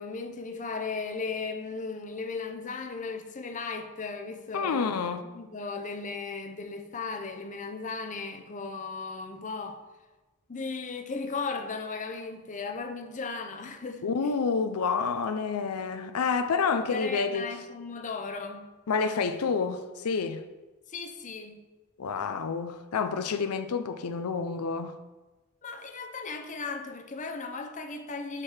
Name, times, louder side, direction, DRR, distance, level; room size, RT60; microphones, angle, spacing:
voice 1, 0.0-9.8 10.5-14.3 16.7-18.7 20.9-21.6 25.6-28.4, left 4 dB, 35° left, 0.6 m, -36 dB
voice 2, 4.5-5.2 14.0-17.5 18.9-20.4 22.0-25.0, left 5 dB, 80° left, 0.5 m, -28 dB
7.4 x 4.5 x 4.9 m
head